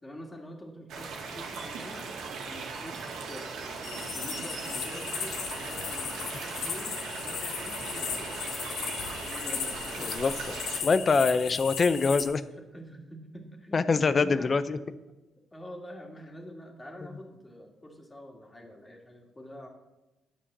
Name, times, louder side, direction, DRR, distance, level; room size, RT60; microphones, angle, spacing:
voice 1, 0.0-2.1 2.5-8.3 8.6-10.2 11.4-11.5 12.2-12.3 12.7-13.9 14.2-14.5 15.5-19.7, equal, 20° left, 2 dB, 2.2 m, -46 dB
sound 1, 0.9-10.8, right 4 dB, 80° right, 2.0 m, -38 dB
sound 2, 3.8-12.2, left 7 dB, 85° left, 1.5 m, -36 dB
voice 2, 10.0-12.4 13.7-14.8, left 4 dB, 40° left, 14 dB, 0.7 m, -25 dB
10.0 x 7.5 x 6.8 m, 1.0 s
cardioid pair, 90°, 0 cm